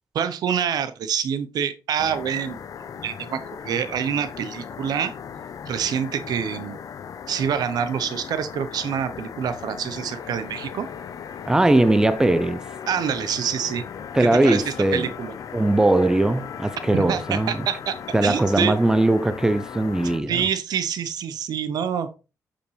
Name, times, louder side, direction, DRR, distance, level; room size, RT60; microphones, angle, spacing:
voice 1, 0.1-2.6 3.0-5.1 5.7-6.8 7.3-10.9 12.9-13.8 14.2-14.6 14.9-15.3 16.9-18.8 20.3-22.1, right 8 dB, 80° right, 0.7 m, -26 dB
sound 1, 2.0-20.2, left 7 dB, 60° left, 0.5 m, -38 dB
sound 2, 10.1-20.2, left 8 dB, 80° left, 1.0 m, -44 dB
voice 2, 11.5-12.6 14.1-15.1 15.5-17.7 18.1-20.4, right 2 dB, 10° right, 0.4 m, -20 dB
6.8 x 5.1 x 3.1 m
cardioid pair, 95°, 7 cm